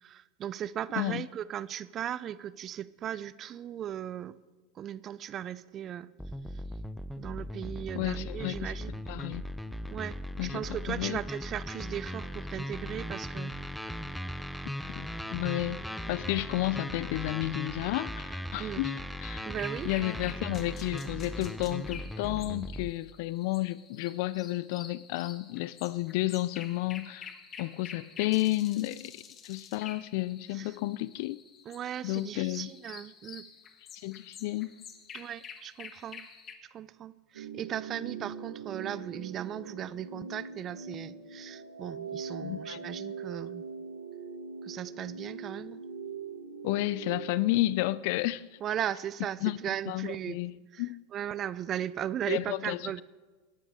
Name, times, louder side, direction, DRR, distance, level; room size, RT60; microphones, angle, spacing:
voice 1, 0.0-4.4 4.8-6.1 7.2-9.1 9.9-13.5 18.6-18.8 19.5-19.9 30.5-30.7 31.7-33.5 35.1-36.2 36.7-43.6 44.6-45.8 48.6-50.4 50.7-50.9 51.1-53.0, right 10 dB, 35° right, 0.5 m, -37 dB
sound 1, 6.2-22.9, equal, ahead, 0.6 m, -38 dB
voice 2, 7.9-8.7 9.1-9.4 10.4-11.2 15.0-15.8 16.1-19.5 19.8-27.3 27.6-31.4 32.0-32.7 34.0-34.7 42.4-42.8 46.6-48.6 49.4-49.6 49.9-50.5 50.8-51.0 52.3-53.0, left 17 dB, 65° left, 0.3 m, -32 dB
sound 2, 19.5-36.5, left 7 dB, 35° left, 1.4 m, -49 dB
sound 3, 37.3-47.2, right 5 dB, 90° right, 1.6 m, -42 dB
18.0 x 11.5 x 3.7 m
hypercardioid pair, 100°, 0 cm